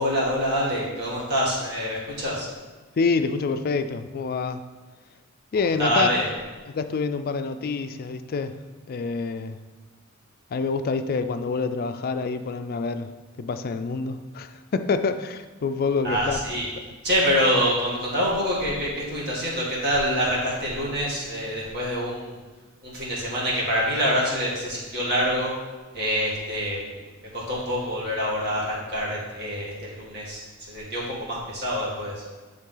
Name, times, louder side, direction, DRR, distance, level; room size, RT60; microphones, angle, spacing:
voice 1, 0.0-2.5 5.8-6.3 16.0-16.7 17.0-22.4 22.8-25.5 25.9-26.9 27.2-30.4 30.7-32.2, equal, 50° right, -5 dB, 2.1 m, -26 dB
voice 2, 3.0-4.6 5.5-6.1 6.7-8.6 8.9-9.6 10.5-13.1 13.4-16.4, left 4 dB, 45° left, 10 dB, 0.4 m, -27 dB
9.1 x 3.7 x 3.9 m, 1.3 s
head